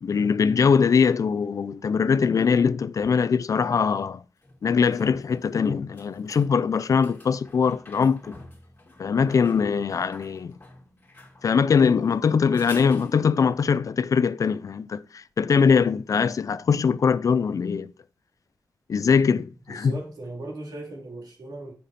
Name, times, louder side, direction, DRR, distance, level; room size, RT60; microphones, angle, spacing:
voice 1, 0.0-4.2 4.6-8.3 9.0-10.5 11.4-17.9 18.9-19.9, left 6 dB, 55° left, 0.4 m, -22 dB
sound 1, 3.0-3.1 4.4-13.5 16.9-17.0, left 2 dB, 30° left, 2.4 m, -48 dB
voice 2, 19.7-21.7, right 2 dB, 70° right, 2.5 m, -38 dB
8.1 x 5.8 x 4.1 m
wide cardioid pair, 130°, 7 cm